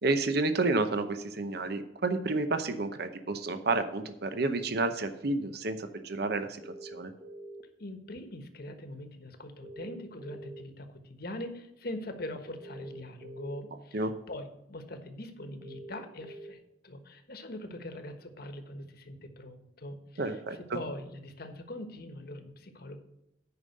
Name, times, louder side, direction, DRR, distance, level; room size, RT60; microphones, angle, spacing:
voice 1, 0.0-7.1 13.9-14.1 20.2-20.8, right 3 dB, 60° right, 9 dB, 0.8 m, -30 dB
sound 1, 4.3-4.6 6.6-7.6 9.6-10.6 12.6-13.6 15.6-16.5, right 2 dB, 25° right, 0.9 m, -45 dB
voice 2, 7.8-16.6 16.8-23.0, left 1 dB, 55° left, 7 dB, 1.3 m, -42 dB
9.7 x 5.4 x 6.5 m, 0.86 s
head